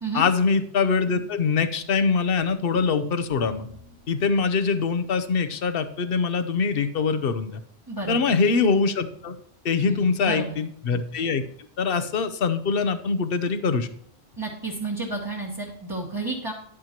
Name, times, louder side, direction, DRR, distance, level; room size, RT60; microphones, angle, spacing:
voice 1, 0.1-3.7 4.1-7.6 8.1-9.4 9.6-11.4 11.8-13.9, left 5 dB, 65° left, 10 dB, 0.9 m, -23 dB
sound 1, 2.4-6.6, left 1 dB, 90° right, 4.3 m, -52 dB
voice 2, 7.9-8.2 9.8-10.6 14.4-16.5, right 3 dB, 20° right, -2 dB, 1.3 m, -31 dB
10.5 x 8.7 x 2.9 m, 0.65 s
omnidirectional pair, 1.1 m